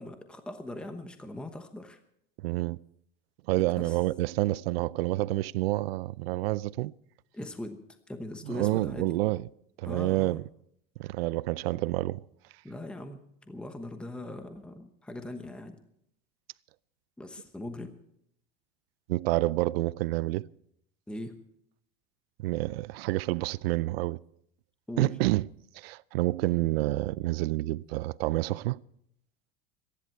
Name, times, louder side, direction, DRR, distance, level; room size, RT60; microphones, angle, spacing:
voice 1, 0.0-2.0 3.8-4.0 7.3-7.8 8.1-9.1 9.8-10.4 12.6-13.2 13.5-15.8 17.2-17.9 21.1-21.4 24.9-25.1, left 1 dB, 5° left, 1.0 m, -40 dB
voice 2, 2.4-2.8 3.5-6.9 8.5-9.4 9.8-10.4 11.0-12.2 19.1-20.5 22.4-24.2 25.0-25.5 25.7-28.8, right 18 dB, 90° right, 0.5 m, -28 dB
24.5 x 11.0 x 4.6 m
supercardioid pair, 145°, 29 cm